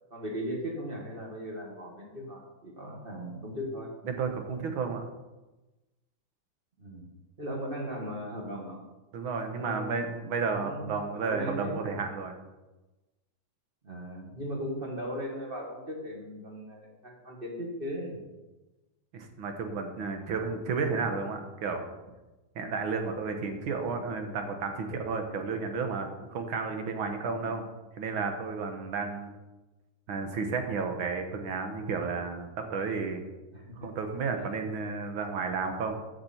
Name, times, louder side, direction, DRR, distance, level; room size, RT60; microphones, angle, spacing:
voice 1, 0.1-3.9 6.8-7.1 7.4-8.8 9.6-10.1 10.5-10.9 11.1-11.8 13.8-18.3 33.5-33.9 34.3-34.6, equal, 30° right, -1 dB, 2.0 m, -38 dB
voice 2, 4.1-5.0 9.1-12.4 19.1-21.8 22.6-27.6 28.0-29.3 30.1-33.2 33.8-36.0, right 4 dB, 85° right, 5 dB, 2.0 m, -32 dB
13.5 x 6.0 x 4.4 m, 1.1 s
omnidirectional pair, 2.2 m